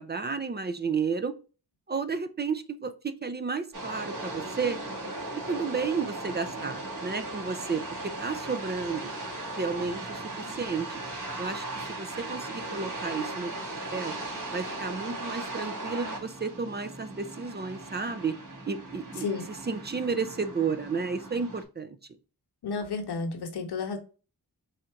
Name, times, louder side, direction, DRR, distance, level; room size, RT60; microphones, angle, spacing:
voice 1, 0.0-1.3 1.9-4.8 5.4-7.8 8.2-9.1 9.6-11.0 11.4-13.5 13.9-14.1 14.5-18.4 18.6-22.0, right 5 dB, 30° right, 10 dB, 0.4 m, -32 dB
sound 1, 3.7-21.6, right 2 dB, 55° right, 1.8 m, -38 dB
voice 2, 22.6-24.0, left 4 dB, 90° left, 5 dB, 1.0 m, -32 dB
4.2 x 2.5 x 4.4 m, 0.35 s
wide cardioid pair, 125°, 38 cm